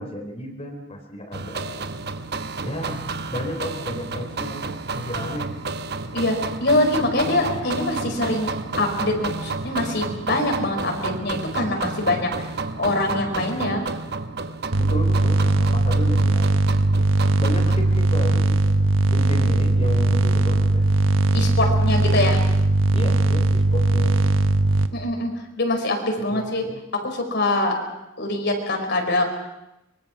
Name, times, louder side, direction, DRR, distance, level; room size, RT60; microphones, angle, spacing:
voice 1, 0.0-1.9 2.6-3.0 3.3-4.7 4.9-5.5 14.7-16.5 17.4-18.7 19.1-20.9 22.9-24.3 26.3-26.8, equal, 30° left, 2 dB, 3.7 m, -32 dB
sound 1, 1.3-18.0, right 3 dB, 55° right, 1.1 m, -31 dB
voice 2, 6.1-12.3 12.8-13.8 21.3-22.4 24.9-26.7 27.0-27.7 28.2-29.2, left 2 dB, 60° left, 3 dB, 4.6 m, -24 dB
sound 2, 14.7-24.9, right 2 dB, 90° right, 1.3 m, -19 dB
24.5 x 23.0 x 6.1 m, 0.92 s
head